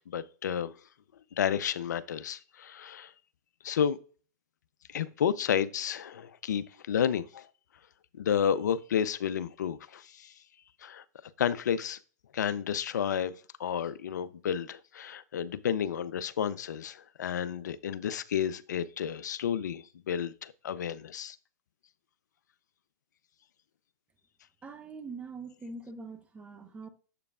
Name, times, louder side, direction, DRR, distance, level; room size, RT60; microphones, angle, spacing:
voice 1, 0.1-0.8 1.4-3.1 3.6-4.0 4.9-7.5 8.2-10.3 10.8-11.0 11.4-12.0 12.3-21.4, left 8 dB, 75° left, 0.5 m, -31 dB
voice 2, 24.6-26.9, right 3 dB, 15° right, 0.9 m, -43 dB
7.5 x 6.7 x 2.4 m
hypercardioid pair, 115°, 10 cm